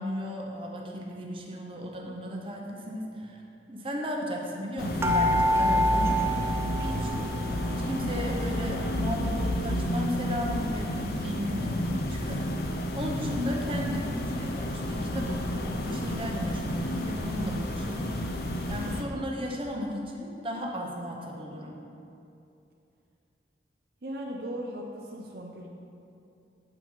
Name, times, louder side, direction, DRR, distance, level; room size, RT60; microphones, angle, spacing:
voice 1, 0.0-3.4 3.7-7.4 7.7-21.8, equal, 30° right, -1 dB, 0.9 m, -35 dB
sound 1, 4.8-19.0, left 1 dB, 60° left, 0.6 m, -31 dB
sound 2, 5.0-7.6 7.8-8.8 9.3-9.4 9.7-9.8, equal, 15° right, 0.4 m, -27 dB
voice 2, 24.0-25.7, equal, 60° right, -1 dB, 0.6 m, -37 dB
8.0 x 4.5 x 5.5 m, 2.7 s
head